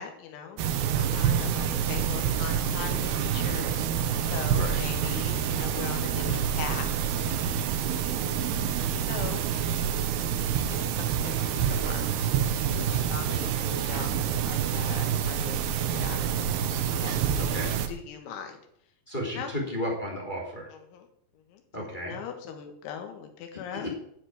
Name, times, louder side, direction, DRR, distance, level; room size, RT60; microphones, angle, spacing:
voice 1, 0.0-3.7 4.3-6.9 9.0-9.5 11.0-11.3 11.6-12.1 12.7-16.5 16.9-18.6 19.3-19.5 20.7-21.1 21.4-21.6 22.0-23.9, left 8 dB, 70° left, 5 dB, 3.9 m, -40 dB
sound 1, 0.6-17.9, right 8 dB, 80° right, 2.3 m, -27 dB
voice 2, 4.5-4.9 6.2-6.4 17.4-17.7 19.1-20.7 21.7-22.2 23.7-23.9, equal, 10° left, -2 dB, 2.5 m, -33 dB
9.7 x 7.9 x 8.9 m, 0.72 s
omnidirectional pair, 5.9 m